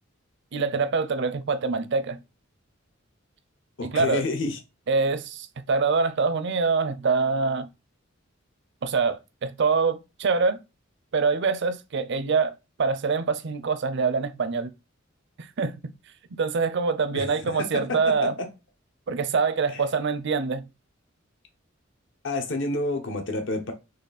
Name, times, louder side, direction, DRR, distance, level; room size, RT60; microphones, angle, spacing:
voice 1, 0.5-2.2 3.8-4.2 4.9-7.7 8.8-10.6 11.1-14.7 15.4-15.8 16.4-18.3 19.1-20.7, right 4 dB, 60° right, 0.5 m, -25 dB
voice 2, 3.8-4.6 17.1-18.3 19.7-19.8 22.2-23.7, left 2 dB, 65° left, 0.9 m, -29 dB
4.2 x 3.1 x 4.0 m
head